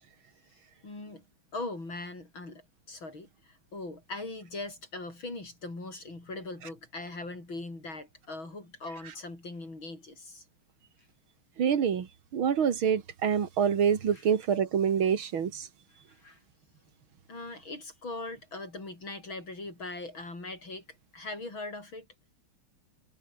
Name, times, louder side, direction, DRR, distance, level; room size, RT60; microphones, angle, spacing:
voice 1, 0.8-1.2 1.5-10.4 14.1-14.3 16.1-16.4 17.3-20.8 21.1-22.1, left 2 dB, 70° left, 7.9 m, -40 dB
voice 2, 11.6-12.1 12.3-15.7, right 7 dB, 75° right, 2.7 m, -26 dB
omnidirectional pair, 2.3 m